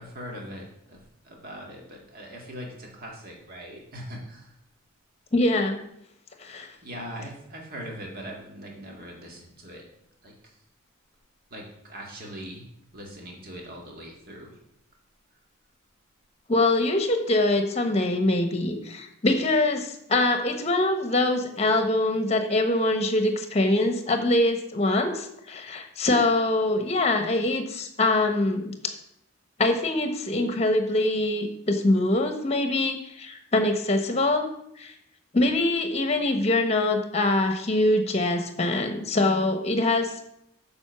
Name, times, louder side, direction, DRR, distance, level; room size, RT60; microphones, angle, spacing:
voice 1, 0.0-4.5 6.8-9.8 10.2-10.6 11.5-12.6 12.9-14.6, equal, 45° right, -1 dB, 2.1 m, -41 dB
voice 2, 5.3-5.8 6.4-6.7 16.5-28.9 29.6-34.5 34.8-34.9 35.3-40.2, left 2 dB, 30° left, 6 dB, 1.1 m, -24 dB
8.0 x 5.3 x 6.8 m, 0.76 s
head